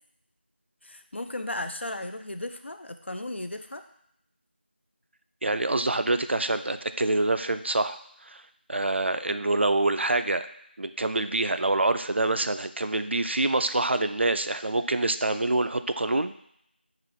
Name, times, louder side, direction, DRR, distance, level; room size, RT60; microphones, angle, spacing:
voice 1, 0.8-3.8, left 1 dB, 85° left, 8 dB, 0.5 m, -35 dB
voice 2, 5.4-8.4 8.7-10.5 10.8-16.3, right 2 dB, 80° right, 10 dB, 0.3 m, -26 dB
5.8 x 2.4 x 3.3 m, 0.72 s
figure-of-eight pair, 180°, 6 cm